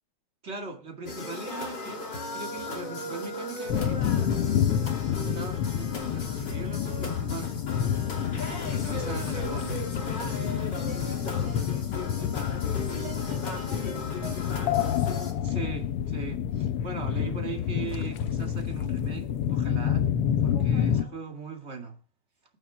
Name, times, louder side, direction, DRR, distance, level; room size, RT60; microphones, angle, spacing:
voice 1, 0.4-2.0 2.3-4.5 5.2-7.7 8.2-10.5 15.4-20.1 20.4-22.0, right 4 dB, 25° right, 2.1 m, -40 dB
sound 1, 1.0-15.3, left 2 dB, 35° left, 3.2 m, -37 dB
sound 2, 3.7-21.0, left 9 dB, 70° left, 1.4 m, -28 dB
voice 2, 8.1-8.7 9.0-9.2 10.4-15.1 20.5-21.2, equal, 60° right, 7.0 m, -46 dB
22.0 x 8.9 x 3.5 m
omnidirectional pair, 3.4 m